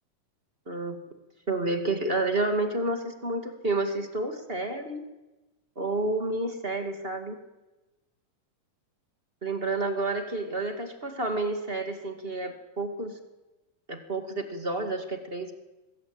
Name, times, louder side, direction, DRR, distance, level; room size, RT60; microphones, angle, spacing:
voice 1, 0.6-1.0 1.5-5.0 5.7-7.4 9.4-13.2 13.9-15.5, right 2 dB, 20° right, 6 dB, 1.9 m, -30 dB
25.0 x 21.0 x 9.0 m, 1.1 s
omnidirectional pair, 3.9 m